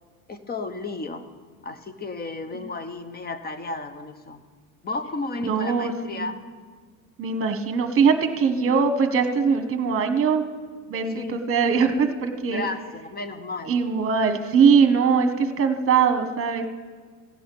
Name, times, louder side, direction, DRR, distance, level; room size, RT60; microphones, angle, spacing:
voice 1, 0.3-1.3 1.6-4.4 4.8-6.4 11.1-11.4 12.5-13.8, left 3 dB, 20° left, 10 dB, 1.0 m, -33 dB
voice 2, 5.4-6.4 7.2-10.4 10.9-12.7 13.7-16.7, right 6 dB, 30° right, 8 dB, 1.3 m, -21 dB
15.0 x 5.6 x 8.5 m, 1.5 s
hypercardioid pair, 85°, 43 cm